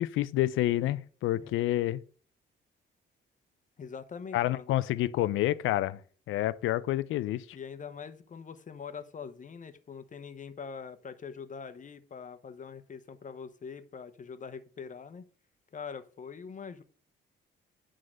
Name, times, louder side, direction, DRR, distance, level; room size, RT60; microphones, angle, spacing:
voice 1, 0.0-2.0 4.3-6.0 6.3-7.4, left 14 dB, 80° left, 0.5 m, -28 dB
voice 2, 3.8-4.7 7.5-15.2 15.7-16.8, left 6 dB, 40° left, 1.0 m, -43 dB
9.5 x 3.8 x 6.4 m
cardioid pair, 90°, 20 cm